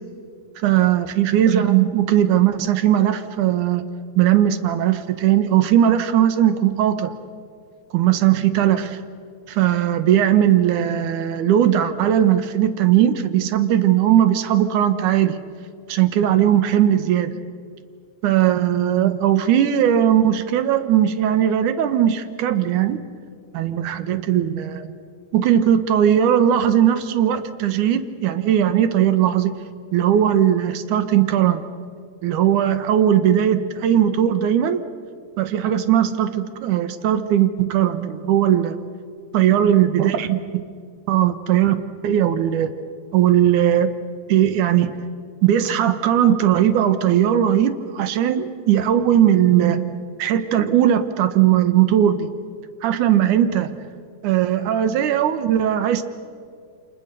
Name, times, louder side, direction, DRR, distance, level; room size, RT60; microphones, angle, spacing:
voice 1, 0.6-3.8 4.2-7.1 7.9-9.0 9.5-15.4 15.9-17.3 18.2-23.1 23.5-24.9 25.3-29.6 29.9-31.7 32.2-34.8 35.4-38.8 39.3-40.4 41.1-41.7 42.0-42.7 43.1-43.9 44.3-44.9 45.4-52.3 52.8-53.8 54.2-56.0, right 10 dB, 90° right, 10 dB, 2.6 m, -18 dB
28.5 x 26.5 x 6.7 m, 2.2 s
omnidirectional pair, 3.4 m